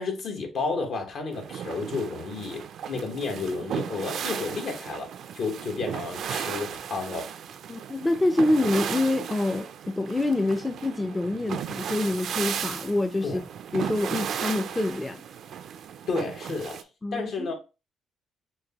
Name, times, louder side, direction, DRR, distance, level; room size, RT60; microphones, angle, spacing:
voice 1, 0.0-7.3 13.2-13.4 16.1-16.9 17.1-17.5, left 4 dB, 65° left, 1.2 m, -31 dB
sound 1, 1.3-16.8, right 8 dB, 70° right, 0.4 m, -35 dB
voice 2, 7.7-13.4 13.7-15.2 17.0-17.5, left 2 dB, 15° left, 0.4 m, -26 dB
6.1 x 2.2 x 2.9 m
cardioid pair, 90°, 0 cm